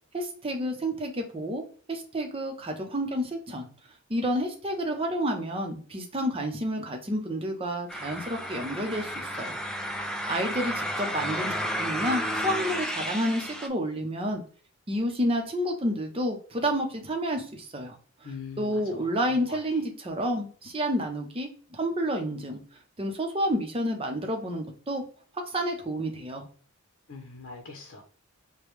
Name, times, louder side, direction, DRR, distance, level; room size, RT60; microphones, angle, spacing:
voice 1, 0.1-1.6 1.9-3.7 4.1-9.6 9.9-14.4 14.9-18.0 18.6-22.6 23.0-25.0 25.5-26.4, equal, 25° right, 3 dB, 0.7 m, -30 dB
sound 1, 7.9-13.7, equal, 5° left, 0.3 m, -32 dB
voice 2, 18.2-19.8 27.1-28.0, left 4 dB, 75° left, 1 dB, 0.8 m, -43 dB
5.1 x 2.2 x 3.1 m, 0.42 s
head